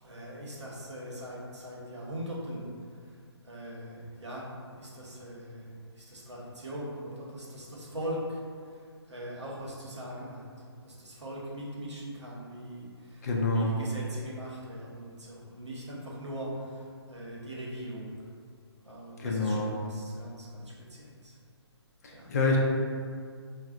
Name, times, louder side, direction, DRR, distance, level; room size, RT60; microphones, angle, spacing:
voice 1, 0.0-2.7 3.4-4.5 4.7-8.4 9.1-10.4 10.8-18.2 18.8-21.3 22.1-22.3, equal, 90° right, -4 dB, 0.8 m, -41 dB
voice 2, 13.2-13.7 19.2-19.7 22.0-22.6, left 3 dB, 35° left, -2 dB, 0.4 m, -27 dB
2.4 x 2.0 x 3.4 m, 2.1 s
figure-of-eight pair, 150°, 14 cm